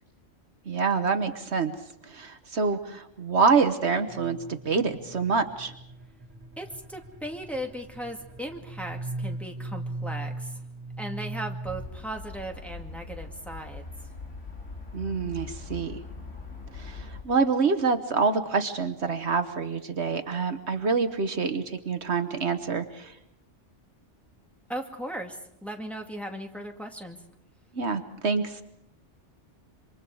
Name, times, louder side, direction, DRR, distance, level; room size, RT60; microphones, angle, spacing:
voice 1, 0.7-1.7 2.1-5.7 14.9-16.0 16.7-23.1 27.7-28.6, right 5 dB, 65° right, 8 dB, 1.4 m, -26 dB
sound 1, 4.1-11.9, right 2 dB, 45° right, 2.2 m, -39 dB
voice 2, 6.6-10.6 11.0-13.9 24.7-27.2, right 1 dB, ahead, 2 dB, 2.1 m, -37 dB
sound 2, 11.6-17.2, left 3 dB, 80° left, 3.1 m, -41 dB
27.5 x 25.0 x 4.8 m, 0.80 s
omnidirectional pair, 1.2 m